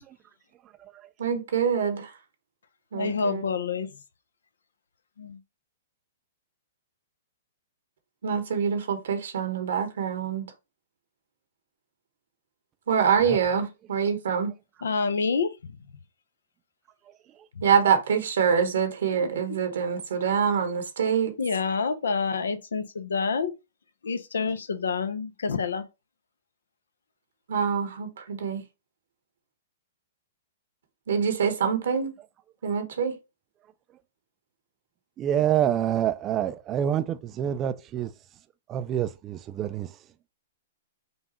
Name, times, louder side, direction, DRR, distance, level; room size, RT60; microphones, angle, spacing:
voice 1, 1.2-2.1 2.9-3.4 8.2-10.5 12.9-14.5 17.6-21.3 27.5-28.6 31.1-32.1 32.6-33.2, right 7 dB, 75° right, 1.0 m, -25 dB
voice 2, 2.9-4.0 5.2-5.4 14.8-15.9 17.5-17.7 19.1-19.6 21.4-23.6 24.0-25.8, left 5 dB, 85° left, 0.7 m, -28 dB
voice 3, 35.2-38.1 38.7-40.0, right 10 dB, 25° right, 0.3 m, -27 dB
5.3 x 2.4 x 3.0 m
hypercardioid pair, 140°, 0 cm